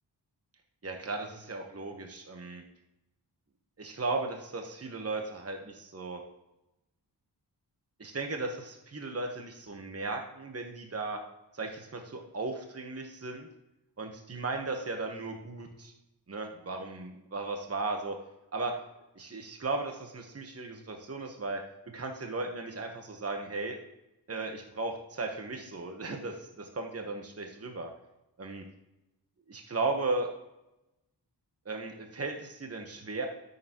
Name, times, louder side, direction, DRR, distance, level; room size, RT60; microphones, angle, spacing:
voice 1, 0.8-2.6 3.8-6.2 8.0-11.2 11.5-13.5 14.0-15.9 16.3-18.2 18.5-18.7 19.2-23.7 24.3-27.9 28.4-28.6 29.5-30.3 31.7-33.3, right 3 dB, 35° right, 3 dB, 1.1 m, -36 dB
12.5 x 6.7 x 3.0 m, 0.94 s
wide cardioid pair, 65°, 43 cm